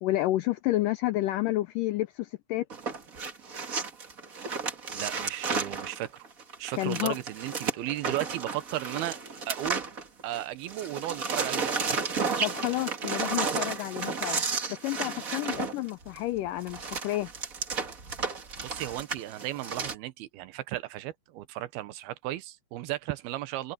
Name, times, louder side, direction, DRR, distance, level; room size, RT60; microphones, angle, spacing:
voice 1, 0.0-2.7 6.8-7.2 12.4-14.4 14.7-17.3, left 16 dB, 85° left, 1.9 m, -30 dB
sound 1, 2.7-10.4 10.7-19.9, right 5 dB, 45° right, 1.1 m, -33 dB
voice 2, 4.9-6.3 6.6-9.2 9.5-9.9 10.2-12.0 18.6-23.7, right 15 dB, 85° right, 2.9 m, -35 dB
omnidirectional pair, 4.4 m